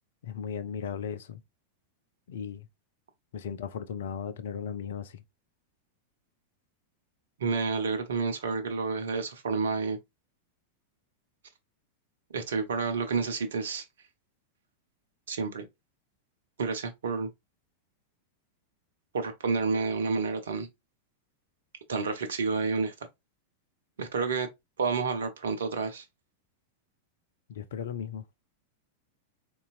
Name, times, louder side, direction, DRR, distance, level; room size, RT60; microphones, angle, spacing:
voice 1, 0.2-1.4 2.3-2.7 3.3-5.2 27.5-28.2, left 8 dB, 60° left, 0.3 m, -36 dB
voice 2, 7.4-10.0 12.3-13.8 15.3-15.6 16.6-17.3 19.1-20.7 21.9-22.9 24.0-24.5 24.8-26.0, right 4 dB, 65° right, 0.6 m, -29 dB
3.9 x 2.3 x 2.4 m
figure-of-eight pair, 90°, 0 cm